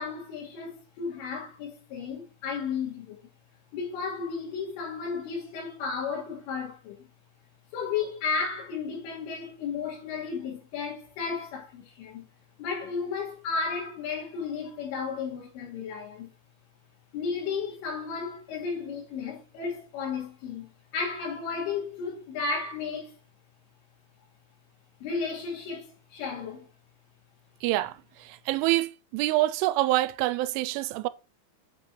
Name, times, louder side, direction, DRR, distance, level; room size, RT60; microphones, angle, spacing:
voice 1, 0.0-3.2 3.7-7.1 7.7-12.2 12.6-16.3 17.1-23.1 25.0-26.7, left 5 dB, 85° left, 4.6 m, -33 dB
voice 2, 27.6-31.1, right 17 dB, 85° right, 3.0 m, -26 dB
8.4 x 4.6 x 4.5 m
omnidirectional pair, 5.5 m